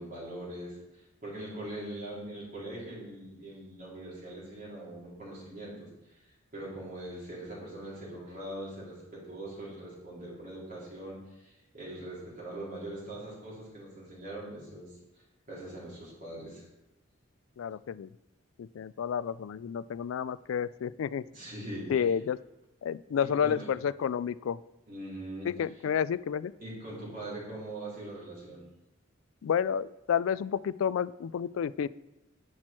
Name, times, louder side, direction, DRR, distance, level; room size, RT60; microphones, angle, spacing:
voice 1, 0.0-5.9 6.5-15.0 15.5-16.7 21.3-22.2 23.2-23.7 24.9-25.8 26.6-28.6, right 1 dB, 45° right, -7 dB, 3.6 m, -42 dB
voice 2, 17.6-18.1 18.8-21.2 21.9-22.4 22.8-23.6 23.8-24.6 25.6-26.5 29.4-31.9, left 8 dB, 75° left, 18 dB, 0.3 m, -30 dB
10.5 x 6.2 x 4.4 m, 0.93 s
head